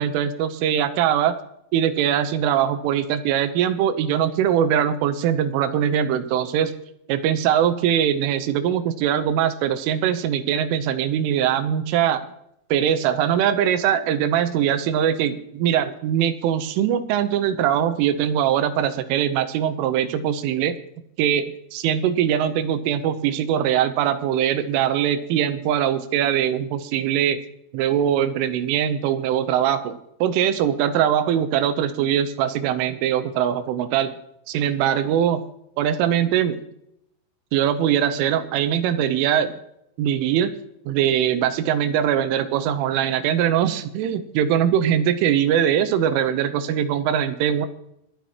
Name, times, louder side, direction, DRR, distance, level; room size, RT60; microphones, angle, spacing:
voice 1, 0.0-1.4 1.7-6.7 7.1-12.2 12.7-20.8 21.2-27.4 27.7-34.1 34.5-35.4 35.8-36.6 37.5-39.6 40.0-40.6 40.9-47.7, right 9 dB, 85° right, 11 dB, 3.3 m, -22 dB
25.5 x 9.3 x 3.0 m, 0.77 s
omnidirectional pair, 5.8 m